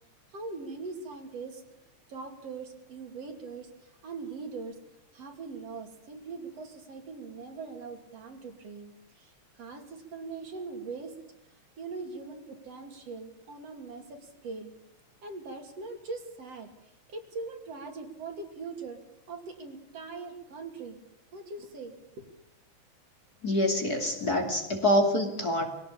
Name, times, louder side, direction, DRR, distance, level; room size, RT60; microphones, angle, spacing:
voice 1, 0.3-1.6 2.1-4.8 5.1-11.1 11.5-14.7 15.2-19.0 19.3-21.0 21.3-22.3, right 4 dB, 55° right, 5 dB, 3.5 m, -41 dB
voice 2, 23.4-25.7, left 1 dB, 30° left, 3 dB, 3.0 m, -26 dB
23.0 x 17.5 x 8.6 m, 0.83 s
omnidirectional pair, 3.4 m